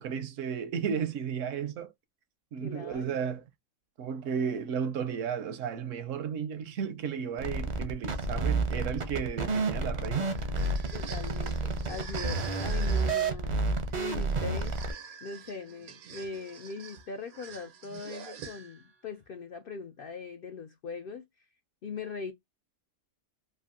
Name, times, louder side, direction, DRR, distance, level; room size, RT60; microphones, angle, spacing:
voice 1, 0.0-1.9 2.5-3.4 4.0-10.3, right 7 dB, 70° right, 0.9 m, -33 dB
voice 2, 2.6-3.3 4.3-4.6 10.9-13.6 13.9-14.8 15.2-21.5 21.8-22.3, left 5 dB, 75° left, 0.5 m, -41 dB
sound 1, 7.4-14.9, right 3 dB, 45° right, 0.5 m, -30 dB
sound 2, 10.3-19.0, right 7 dB, 90° right, 1.3 m, -46 dB
3.3 x 2.5 x 2.4 m
omnidirectional pair, 1.5 m